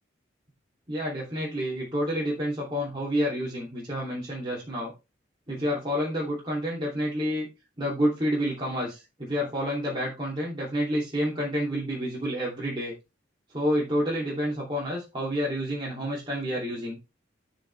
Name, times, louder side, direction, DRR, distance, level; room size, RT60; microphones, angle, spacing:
voice 1, 0.9-4.9 5.5-7.5 7.8-12.9 13.5-17.0, equal, 25° right, -5 dB, 2.9 m, -29 dB
12.5 x 5.5 x 3.4 m, 0.26 s
head